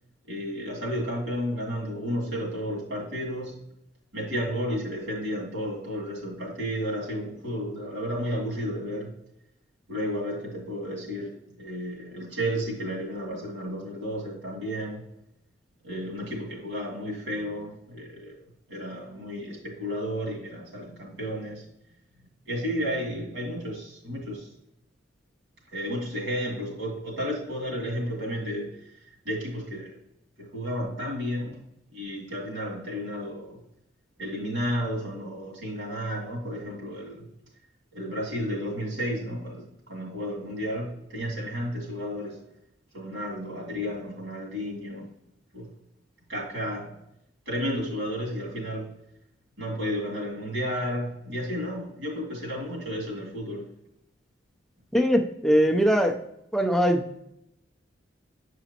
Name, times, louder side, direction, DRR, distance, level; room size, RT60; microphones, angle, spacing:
voice 1, 0.3-3.6 4.1-9.1 9.9-11.3 11.6-15.0 15.8-18.4 18.7-21.6 22.5-24.5 25.7-28.7 29.2-29.9 30.4-31.6 31.9-33.6 34.2-37.3 37.9-42.4 42.9-45.1 45.5-45.7 46.3-47.0 47.5-48.9 49.6-53.6, equal, 85° right, -2 dB, 2.3 m, -32 dB
voice 2, 54.9-56.2 56.5-57.2, equal, ahead, 4 dB, 0.4 m, -22 dB
7.8 x 5.0 x 2.8 m, 0.80 s
head